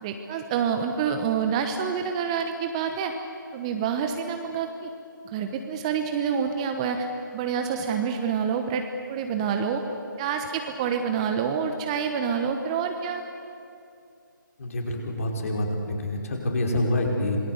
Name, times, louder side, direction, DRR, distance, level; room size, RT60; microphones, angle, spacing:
voice 1, 0.0-3.1 3.5-4.9 5.2-7.1 7.3-8.8 9.1-9.8 10.2-13.2, right 7 dB, 20° right, 6 dB, 1.0 m, -27 dB
voice 2, 14.6-17.4, left 1 dB, 45° left, 1 dB, 4.8 m, -27 dB
26.5 x 21.0 x 8.1 m, 2.6 s
figure-of-eight pair, 155°, 11 cm